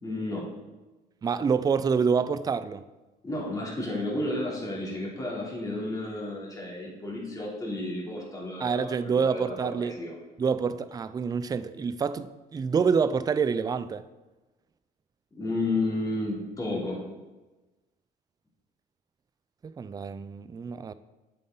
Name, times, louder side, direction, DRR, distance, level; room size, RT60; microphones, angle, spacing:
voice 1, 0.0-0.4 3.2-10.1 15.3-17.0, left 2 dB, 20° left, 3.1 m, -32 dB
voice 2, 1.2-2.8 8.6-10.0 10.4-14.1 19.6-20.9, right 6 dB, 20° right, 0.4 m, -27 dB
8.0 x 7.6 x 3.9 m
cardioid pair, 110°, 17 cm